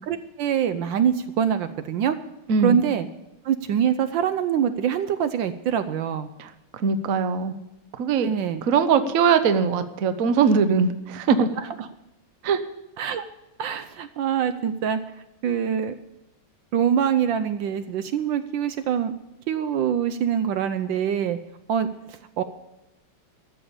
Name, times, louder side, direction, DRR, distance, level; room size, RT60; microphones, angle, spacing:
voice 1, 0.1-2.2 2.6-3.1 3.4-6.3 8.2-8.6 13.0-13.2 13.6-15.0 15.4-15.9 16.7-19.1 19.5-21.4 21.7-22.4, right 8 dB, 70° right, 10 dB, 1.3 m, -24 dB
voice 2, 2.5-2.8 6.4-7.5 8.0-8.3 8.6-11.5 12.4-12.6, right 6 dB, 55° right, 10 dB, 1.0 m, -21 dB
14.0 x 6.9 x 8.7 m, 0.92 s
omnidirectional pair, 2.3 m